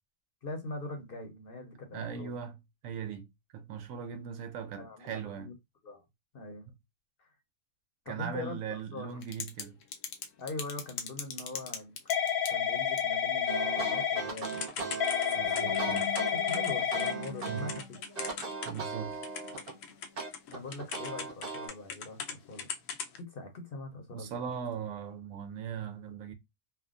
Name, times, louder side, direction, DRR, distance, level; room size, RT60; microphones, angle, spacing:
voice 1, 0.4-2.4 4.1-4.3 4.8-5.5 5.8-6.0 6.3-6.6 7.2-7.3 8.0-9.2 10.4-12.1 12.5-15.0 16.3-17.8 20.5-22.7 23.2-24.4, left 2 dB, 50° left, 0.8 m, -42 dB
voice 2, 1.9-2.6 2.8-3.3 3.5-5.5 8.1-9.8 15.3-16.1 17.5-17.7 18.7-19.2 24.1-26.3, right 7 dB, 80° right, 1.0 m, -39 dB
Typing / Telephone, 9.2-9.6 9.9-18.9 19.2-22.3 22.6-23.2, left 8 dB, 80° left, 1.0 m, -31 dB
sound 1, 13.5-17.8 18.2-19.8 20.2-21.7, right 4 dB, 45° right, 0.9 m, -38 dB
sound 2, 15.4-20.4, left 3 dB, 20° right, 0.7 m, -45 dB
3.4 x 2.1 x 2.4 m
omnidirectional pair, 1.4 m